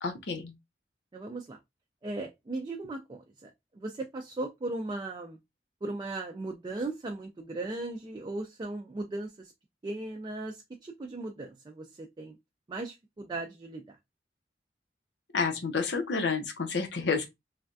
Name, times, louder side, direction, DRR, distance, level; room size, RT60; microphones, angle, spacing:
voice 1, 0.0-0.5 15.3-17.3, left 4 dB, 85° left, 0.7 m, -30 dB
voice 2, 1.1-1.6 2.0-5.4 5.8-9.5 9.8-12.4 12.7-14.0, right 2 dB, 25° right, 0.3 m, -37 dB
3.2 x 2.3 x 2.5 m
head